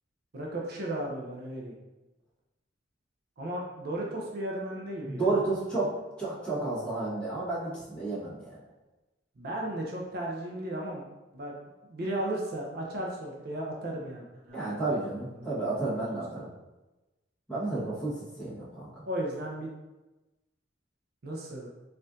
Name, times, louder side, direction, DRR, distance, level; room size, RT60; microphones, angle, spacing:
voice 1, 0.3-1.7 3.4-5.4 9.4-11.0 11.3-11.5 11.9-15.0 15.4-16.2 19.1-19.8 21.2-21.7, right 1 dB, 55° right, -2 dB, 0.6 m, -35 dB
voice 2, 5.0-5.9 6.2-8.5 14.5-16.5 17.5-19.0, right 2 dB, 5° left, -10 dB, 1.2 m, -31 dB
4.2 x 2.5 x 2.5 m, 1.1 s
head